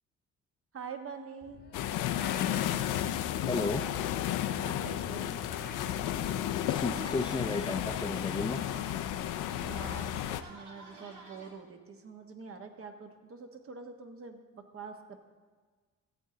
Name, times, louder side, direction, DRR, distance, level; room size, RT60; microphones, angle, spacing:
voice 1, 0.7-1.6 4.6-5.4 9.6-15.2, right 5 dB, 45° right, 5 dB, 1.2 m, -45 dB
sound 1, 1.4-7.0, left 4 dB, 35° left, 1.0 m, -45 dB
sound 2, 1.7-10.4, left 12 dB, 90° left, 0.5 m, -33 dB
voice 2, 3.5-3.9 6.7-8.6, left 3 dB, 15° left, 6 dB, 0.5 m, -33 dB
sound 3, 5.6-11.5, right 2 dB, 85° right, 2.1 m, -51 dB
14.0 x 8.4 x 3.8 m, 1.5 s
cardioid pair, 90°, 30 cm